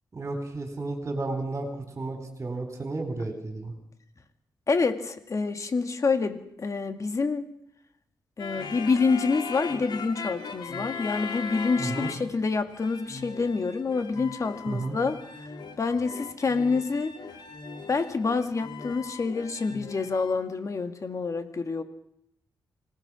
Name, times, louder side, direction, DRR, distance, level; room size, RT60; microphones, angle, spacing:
voice 1, 0.1-1.7 2.0-3.7 11.8-12.1 14.7-15.0, right 2 dB, 35° right, 4 dB, 3.8 m, -32 dB
voice 2, 4.7-7.5 8.4-15.2 15.8-17.1 17.9-21.8, left 4 dB, 45° left, 7 dB, 2.0 m, -27 dB
sound 1, 8.4-12.4 12.7-20.4, left 5 dB, 70° left, 2.7 m, -39 dB
25.5 x 18.0 x 6.2 m, 0.77 s
cardioid pair, 100°, 8 cm